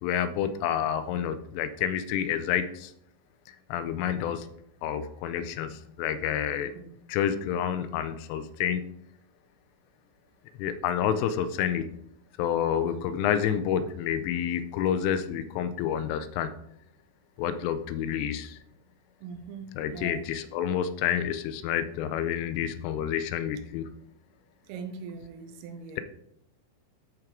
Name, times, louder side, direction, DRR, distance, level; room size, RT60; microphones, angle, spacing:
voice 1, 0.0-2.9 3.5-4.5 4.8-6.7 7.1-8.9 10.6-11.9 12.4-16.5 17.4-18.6 19.8-23.9, left 9 dB, 85° left, 11 dB, 3.1 m, -29 dB
voice 2, 6.7-7.0 19.2-20.3 24.6-26.0, right 5 dB, 85° right, 6 dB, 3.6 m, -41 dB
13.0 x 4.6 x 3.7 m, 0.74 s
omnidirectional pair, 5.8 m